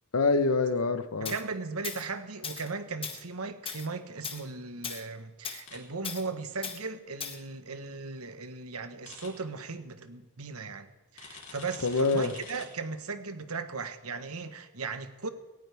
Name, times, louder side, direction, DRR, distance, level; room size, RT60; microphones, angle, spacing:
voice 1, 0.1-1.3 11.8-12.3, left 3 dB, 85° left, 1.0 m, -25 dB
Tools, 1.2-1.4 1.8-2.1 2.4-2.7 3.0-3.2 3.7-3.9 4.2-4.4 4.8-5.0 5.4-5.6 6.0-6.2 6.6-6.8 7.2-7.4, left 6 dB, 25° left, 1.0 m, -38 dB
voice 2, 1.2-15.3, right 4 dB, 85° right, 1.3 m, -37 dB
sound 1, 5.7-5.8 9.0-9.3 11.2-12.7, left 5 dB, 60° left, 3.6 m, -47 dB
17.5 x 17.0 x 3.5 m
head